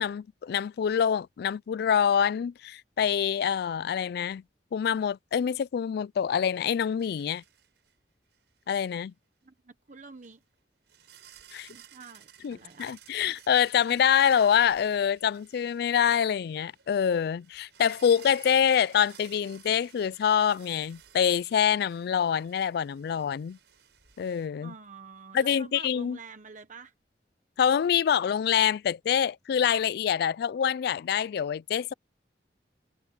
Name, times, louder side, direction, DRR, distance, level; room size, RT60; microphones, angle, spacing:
voice 1, 0.0-4.4 4.7-7.4 8.7-9.1 11.5-11.7 12.4-23.6 24.2-24.7 25.3-26.2 27.6-31.9, left 8 dB, 60° left, 0.3 m, -26 dB
sound 1, 7.0-8.0 8.3-8.5 10.2-10.3 10.9-24.5, right 10 dB, 80° right, 5.4 m, -55 dB
voice 2, 9.4-10.4 11.7-12.9 24.6-26.9, right 4 dB, 45° right, 1.0 m, -48 dB
head